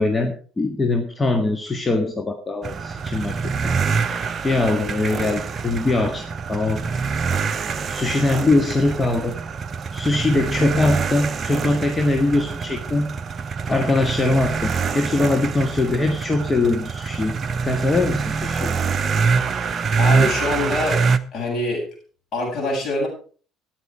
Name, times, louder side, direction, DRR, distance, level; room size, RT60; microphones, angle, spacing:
voice 1, 0.0-6.8 7.9-9.3 9.9-13.1 13.7-17.3 17.6-18.7, left 2 dB, 20° left, 5 dB, 1.6 m, -22 dB
sound 1, 2.6-21.2, right 5 dB, 35° right, 0.9 m, -25 dB
voice 2, 20.0-21.0 21.3-21.9 22.3-23.1, left 2 dB, 45° left, -1 dB, 7.9 m, -24 dB
13.5 x 10.0 x 4.7 m, 0.42 s
figure-of-eight pair, 55°, 0 cm